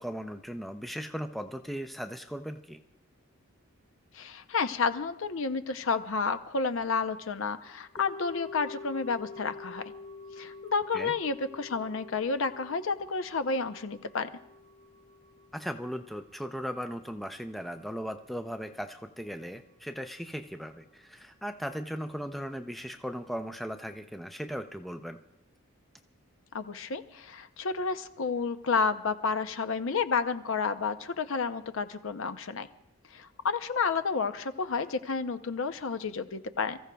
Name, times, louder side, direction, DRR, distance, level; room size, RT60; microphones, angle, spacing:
voice 1, 0.0-2.8 10.9-11.1 15.5-25.2, equal, ahead, 7 dB, 0.4 m, -37 dB
voice 2, 4.1-9.8 10.4-14.3 26.5-32.7 33.1-36.8, left 4 dB, 65° left, 10 dB, 0.6 m, -31 dB
sound 1, 8.0-18.2 18.5-18.6, left 3 dB, 35° left, 3.1 m, -47 dB
28.0 x 14.5 x 2.3 m, 0.86 s
head